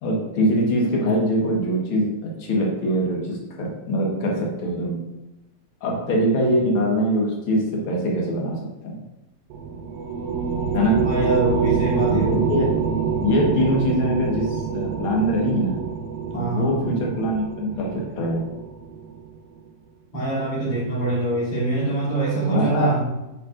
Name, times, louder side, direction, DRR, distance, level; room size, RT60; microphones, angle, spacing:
voice 1, 0.0-5.0 5.8-9.0 10.7-11.0 12.1-12.7 13.2-15.8 16.3-18.4 22.4-22.9, equal, 60° left, -2 dB, 1.3 m, -23 dB
sound 1, 9.5-19.3, right 6 dB, 80° right, 2.5 m, -26 dB
voice 2, 11.0-12.7 16.3-16.9 20.1-23.1, right 2 dB, 40° left, -8 dB, 3.3 m, -24 dB
9.2 x 5.7 x 2.5 m, 0.99 s
omnidirectional pair, 4.4 m